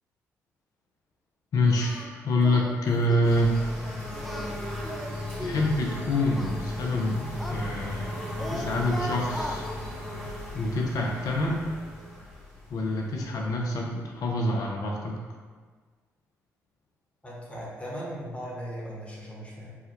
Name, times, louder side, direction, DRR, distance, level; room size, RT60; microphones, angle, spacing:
voice 1, 1.5-3.9 5.4-8.1 8.5-9.7 10.5-11.7 12.7-15.2, left 1 dB, 55° left, -1 dB, 0.5 m, -26 dB
Singing, 1.8-2.1 2.4-2.8 3.1-3.4 4.1-5.7 6.3-8.1 8.4-9.6, equal, ahead, 0.4 m, -38 dB
sound 1, 3.2-13.8, left 1 dB, 90° left, 1.4 m, -36 dB
voice 2, 17.2-19.7, equal, 15° left, -5 dB, 1.0 m, -38 dB
3.4 x 2.1 x 3.0 m, 1.5 s
hypercardioid pair, 40°, 7 cm